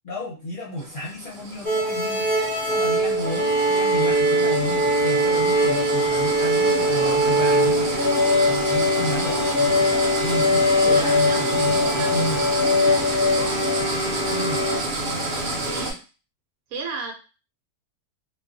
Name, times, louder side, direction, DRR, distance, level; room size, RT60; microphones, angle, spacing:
voice 1, 0.0-2.3 2.6-8.0 8.5-9.8 10.2-12.4 14.3-14.6, equal, 45° left, -6 dB, 0.7 m, -32 dB
sound 1, 0.8-15.9, right 2 dB, 55° right, 0.8 m, -30 dB
sound 2, 1.6-14.8, equal, 10° right, 0.8 m, -21 dB
voice 2, 10.8-11.4 11.8-12.1 12.5-12.6 13.1-13.6 15.4-16.0 16.7-17.1, right 4 dB, 75° right, 2 dB, 1.1 m, -34 dB
2.6 x 2.3 x 2.4 m, 0.33 s
omnidirectional pair, 1.6 m